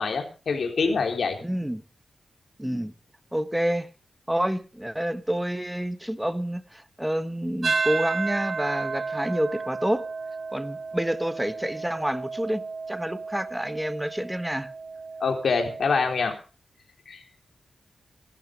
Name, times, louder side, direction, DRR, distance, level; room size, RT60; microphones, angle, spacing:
voice 1, 0.0-1.4 15.2-16.3 17.1-17.2, left 4 dB, 65° left, 3.9 m, -25 dB
voice 2, 1.4-1.8 2.6-2.9 3.3-3.9 4.3-10.0 10.5-14.7, right 1 dB, 5° right, 1.2 m, -28 dB
sound 1, 7.6-16.1, right 4 dB, 45° right, 1.5 m, -33 dB
16.0 x 12.5 x 5.3 m
wide cardioid pair, 105°, 0 cm